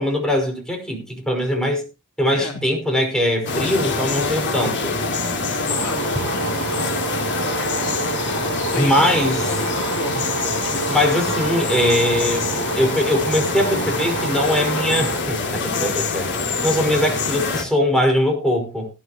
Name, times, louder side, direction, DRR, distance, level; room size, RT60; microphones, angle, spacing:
voice 1, 0.0-1.8 2.2-4.9 8.8-9.5 10.9-18.9, left 1 dB, 5° left, 2 dB, 5.3 m, -21 dB
sound 1, 3.5-17.6, left 3 dB, 55° left, 3.2 m, -25 dB
voice 2, 5.5-7.1 8.5-9.1 9.5-10.9, left 3 dB, 85° left, 4 dB, 3.1 m, -33 dB
sound 2, 5.7-15.2, right 5 dB, 65° right, 1.0 m, -29 dB
17.5 x 12.0 x 3.0 m, 0.29 s
head